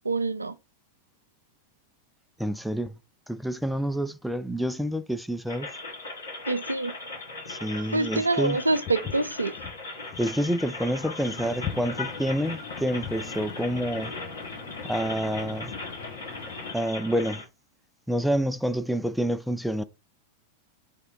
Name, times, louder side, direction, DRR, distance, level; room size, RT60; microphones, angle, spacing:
voice 1, 0.0-0.5 6.5-6.9 7.9-9.5, right 2 dB, 80° right, 0.4 m, -26 dB
voice 2, 2.4-2.9 3.3-5.7 7.5-8.6 10.2-14.1 14.8-15.7 16.7-17.4 18.1-19.8, equal, ahead, 0.4 m, -28 dB
sound 1, 5.5-17.4, left 3 dB, 75° left, 1.7 m, -38 dB
Walk footsteps, 8.9-13.3, left 9 dB, 25° left, 0.8 m, -39 dB
Engine, 11.2-16.7, left 5 dB, 50° left, 0.9 m, -42 dB
3.5 x 3.3 x 3.7 m
figure-of-eight pair, 90°, 0 cm